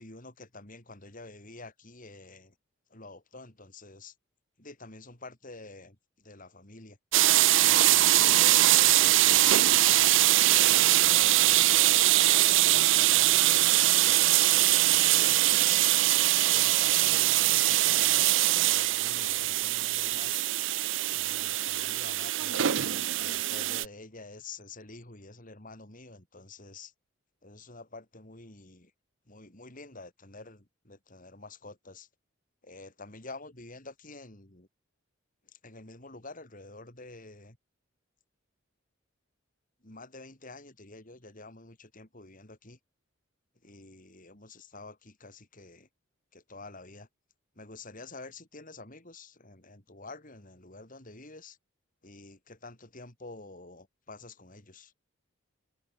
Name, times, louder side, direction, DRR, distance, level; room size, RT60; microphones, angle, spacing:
voice 1, 0.0-2.5 2.9-4.1 4.6-7.0 7.6-15.8 16.5-20.5 21.1-26.9 27.4-28.9 29.3-32.1 32.6-34.7 35.5-37.6 39.8-42.8 43.6-45.9 46.3-47.1 47.6-51.6 52.0-54.9, left 3 dB, 40° left, 4.1 m, -48 dB
sound 1, 7.1-23.9, right 15 dB, 65° right, 0.6 m, -23 dB
head